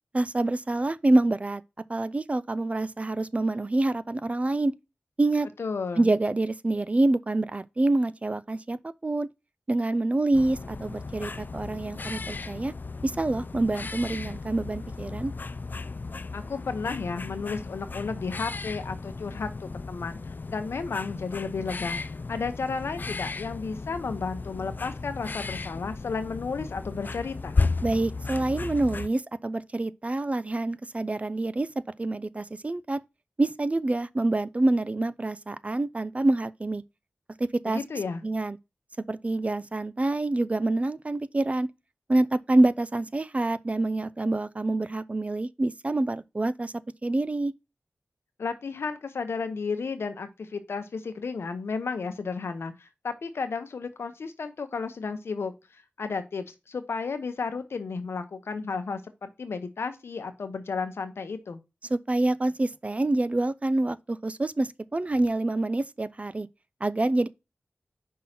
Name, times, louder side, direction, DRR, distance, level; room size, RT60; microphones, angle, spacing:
voice 1, 0.1-1.6 1.9-4.7 5.2-5.5 6.0-9.3 9.7-12.7 13.0-15.3 27.8-31.7 32.0-33.0 33.4-36.8 37.4-37.8 38.2-38.6 39.1-41.7 42.1-46.7 47.0-47.5 61.9-66.5 66.8-67.3, right 2 dB, 35° right, 0.4 m, -26 dB
voice 2, 5.6-6.1 16.3-27.6 37.7-38.2 48.4-61.6, left 4 dB, 85° left, 0.9 m, -33 dB
sound 1, 10.3-29.1, left 3 dB, 50° left, 0.4 m, -35 dB
5.5 x 3.8 x 5.8 m
cardioid pair, 50°, 4 cm